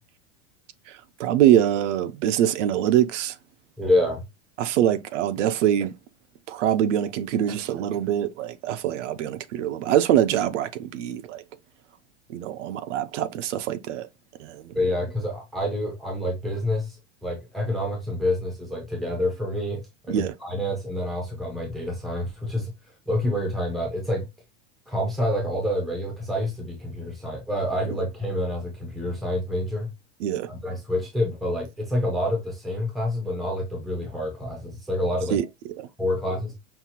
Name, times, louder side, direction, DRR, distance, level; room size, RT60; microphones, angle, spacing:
voice 1, 0.9-3.3 4.6-5.9 6.5-11.4 12.3-14.1 14.4-14.8 20.1-20.3 30.2-30.5 35.3-35.4 35.8-35.9, right 11 dB, 75° right, 0.6 m, -24 dB
voice 2, 3.8-4.2 14.7-17.0 17.2-22.7 23.1-24.3 24.9-29.9 30.5-35.4 36.0-36.5, left 1 dB, ahead, 0.5 m, -27 dB
5.6 x 2.4 x 2.8 m
supercardioid pair, 180°, 37 cm